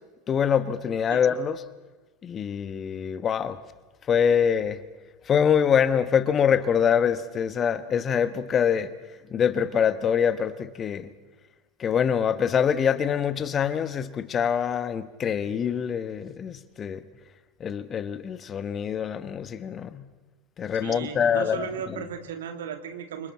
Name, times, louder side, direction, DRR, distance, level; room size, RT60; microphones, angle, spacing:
voice 1, 0.3-1.6 2.2-3.6 4.1-4.8 5.3-8.9 9.3-11.1 11.8-17.0 17.6-20.0 20.6-21.7, left 7 dB, 30° left, 1.2 m, -24 dB
voice 2, 20.8-23.3, right 7 dB, 70° right, 2.2 m, -35 dB
29.5 x 26.0 x 4.3 m
figure-of-eight pair, 80°, 0 cm